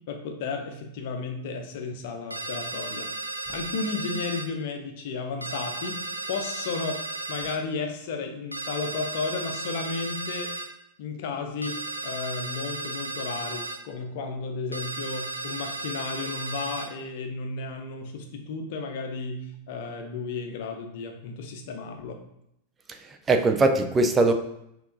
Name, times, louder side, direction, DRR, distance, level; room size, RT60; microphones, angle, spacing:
voice 1, 0.1-3.1 3.5-6.0 6.3-7.0 7.3-10.5 11.0-22.2, left 4 dB, 50° left, 0.6 m, -33 dB
sound 1, 2.3-4.5 5.4-7.6 8.5-10.7 11.6-13.8 14.7-16.9, right 2 dB, 85° right, 0.3 m, -34 dB
voice 2, 22.9-24.3, right 2 dB, 20° right, 0.4 m, -21 dB
5.5 x 2.9 x 2.5 m
figure-of-eight pair, 90°, 0 cm